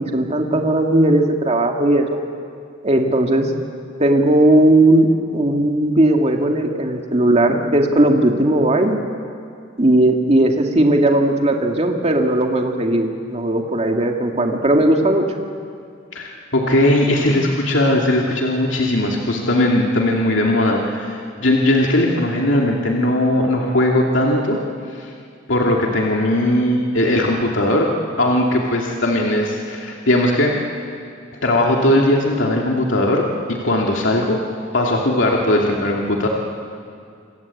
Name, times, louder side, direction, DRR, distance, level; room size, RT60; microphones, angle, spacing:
voice 1, 0.0-2.2 2.8-3.5 4.0-9.0 9.8-15.2, right 1 dB, 35° right, 2 dB, 2.2 m, -17 dB
voice 2, 16.1-24.6 25.0-25.1 25.5-27.9 28.2-30.6 31.4-34.4 34.7-36.3, left 1 dB, 70° left, -1 dB, 2.7 m, -18 dB
28.0 x 24.5 x 8.6 m, 2.3 s
head